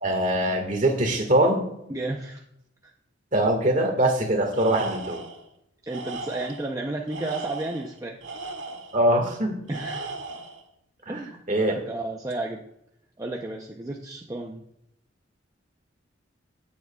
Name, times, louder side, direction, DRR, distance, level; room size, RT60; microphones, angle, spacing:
voice 1, 0.0-1.6 3.3-5.2 8.9-9.6 11.1-11.2 11.5-11.8, right 1 dB, 40° right, 3 dB, 1.7 m, -22 dB
voice 2, 1.9-2.4 2.8-2.9 5.9-8.2 9.7-10.1 11.1-12.6 13.2-14.6, right 2 dB, 15° right, 0 dB, 0.6 m, -33 dB
Tools, 4.5-5.4 5.9-6.7 7.1-9.0 9.7-10.6, right 3 dB, 75° right, 1.6 m, -37 dB
17.0 x 7.4 x 2.3 m, 0.78 s
head